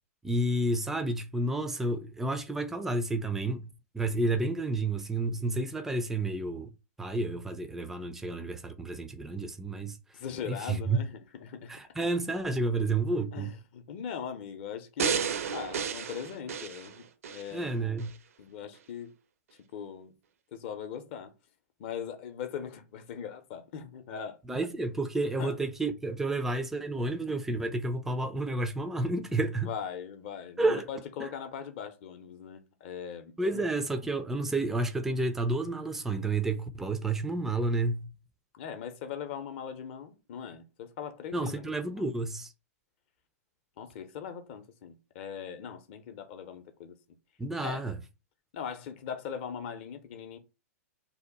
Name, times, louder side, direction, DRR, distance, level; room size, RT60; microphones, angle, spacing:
voice 1, 0.2-6.7 7.0-10.0 10.5-11.0 11.7-13.5 17.5-18.1 24.5-29.7 30.6-30.9 31.2-31.3 33.4-38.1 41.3-42.5 47.4-48.0, right 2 dB, 5° right, 0.3 m, -30 dB
voice 2, 10.1-11.7 13.3-17.8 18.4-19.1 19.7-20.1 20.5-21.3 21.8-24.6 25.4-25.6 29.6-33.7 38.5-41.8 43.8-47.0 47.6-47.8 48.5-50.4, left 7 dB, 45° left, 0.6 m, -40 dB
sound 1, 15.0-17.5 18.0-18.1, right 7 dB, 65° right, 0.5 m, -32 dB
2.7 x 2.1 x 3.9 m
figure-of-eight pair, 110°, 8 cm